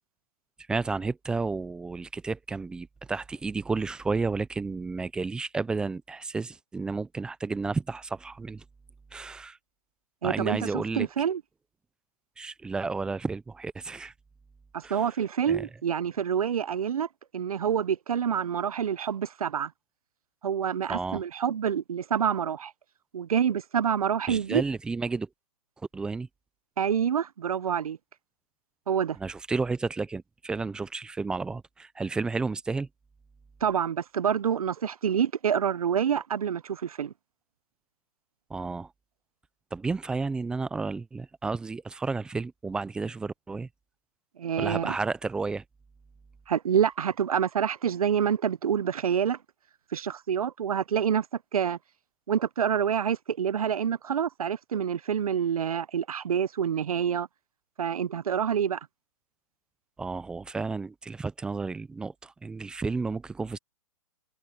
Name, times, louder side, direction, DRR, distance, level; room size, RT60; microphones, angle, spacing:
voice 1, 0.7-8.6 9.1-9.6 10.2-11.1 12.4-14.1 14.8-15.0 15.5-15.7 20.9-21.2 24.3-25.3 25.9-26.3 29.2-32.9 38.5-38.9 39.7-43.7 44.6-45.6 60.0-63.6, right 4 dB, 5° right, 0.5 m, -32 dB
voice 2, 10.2-11.4 14.7-17.1 17.3-19.7 20.4-22.7 23.1-24.6 26.8-28.0 28.9-29.2 33.6-37.1 44.4-45.0 46.5-49.4 49.9-51.3 51.5-51.8 52.3-57.3 57.8-58.8, right 8 dB, 80° right, 0.7 m, -27 dB
hypercardioid pair, 150°, 18 cm